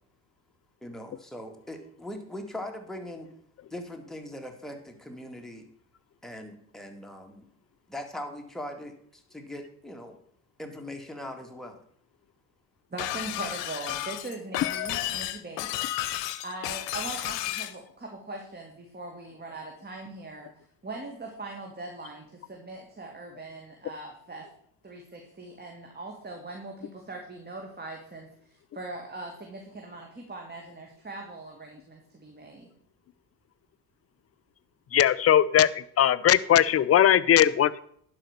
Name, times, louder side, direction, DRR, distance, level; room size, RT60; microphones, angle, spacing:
voice 1, 0.8-3.3 3.7-5.6 6.2-7.4 7.9-10.2 10.6-11.8, left 1 dB, ahead, 3 dB, 2.2 m, -40 dB
voice 2, 12.9-15.7 16.4-20.5 20.8-24.5 24.8-32.7, right 2 dB, 20° right, 1 dB, 2.1 m, -41 dB
Shatter, 13.0-17.8, left 14 dB, 75° left, 0.8 m, -32 dB
voice 3, 34.9-35.7 36.0-37.8, left 10 dB, 30° left, 18 dB, 0.5 m, -19 dB
11.0 x 5.1 x 6.6 m, 0.65 s
hypercardioid pair, 60°, 47 cm